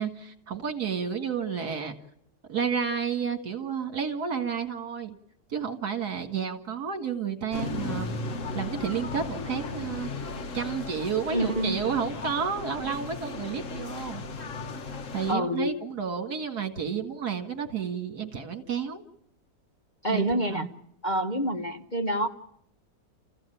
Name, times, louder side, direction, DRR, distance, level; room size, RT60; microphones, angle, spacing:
voice 1, 0.0-1.9 2.5-5.2 5.5-8.2 8.5-10.2 10.5-14.2 15.1-19.0 20.1-20.2 20.5-20.7, right 7 dB, 60° right, 7 dB, 2.4 m, -31 dB
sound 1, 7.5-15.3, left 3 dB, 50° left, 1.4 m, -36 dB
voice 2, 11.3-11.8 15.3-15.8 20.0-20.7 21.0-22.3, right 1 dB, 30° left, 3 dB, 1.1 m, -27 dB
29.0 x 15.5 x 9.1 m, 0.75 s
omnidirectional pair, 1.9 m